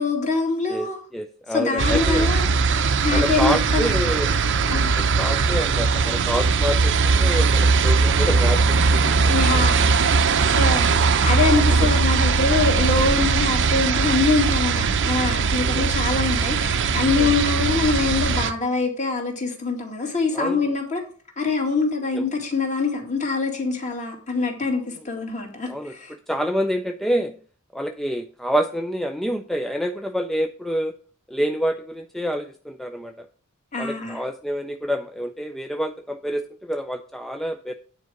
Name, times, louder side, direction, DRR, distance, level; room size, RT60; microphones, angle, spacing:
voice 1, 0.0-1.0 1.5-3.9 4.7-4.9 9.3-21.0 21.4-26.1 33.7-34.2, left 4 dB, 35° left, 2 dB, 2.2 m, -24 dB
voice 2, 0.7-2.3 3.1-4.3 4.6-9.1 9.5-9.6 10.3-10.9 11.8-11.9 15.6-15.9 17.2-17.3 20.3-20.7 22.1-22.3 25.7-27.3 27.7-30.9 31.3-33.3 33.8-37.7, equal, ahead, 6 dB, 0.4 m, -27 dB
sound 1, 1.8-18.5, right 4 dB, 55° right, 0.6 m, -20 dB
9.5 x 4.6 x 6.4 m, 0.42 s
head